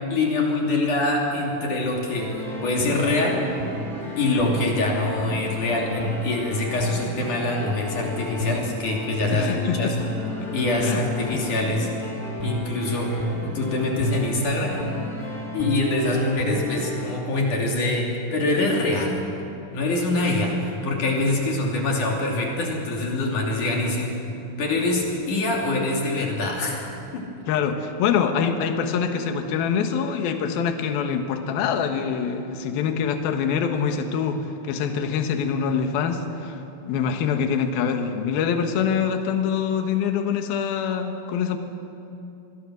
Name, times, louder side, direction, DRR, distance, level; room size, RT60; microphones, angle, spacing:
voice 1, 0.1-2.3 2.6-3.4 4.2-10.0 10.5-11.9 12.4-13.1 13.4-14.8 15.5-19.2 19.7-24.2 24.6-26.9 27.1-27.3, left 2 dB, 45° left, -1 dB, 3.8 m, -24 dB
sound 1, 2.1-17.1, equal, 10° right, 3.5 m, -31 dB
voice 2, 9.3-9.9 10.8-11.0 11.3-11.4 27.5-36.6 36.9-41.6, left 7 dB, 65° left, 6 dB, 2.7 m, -25 dB
26.5 x 21.0 x 6.4 m, 2.7 s
omnidirectional pair, 5.7 m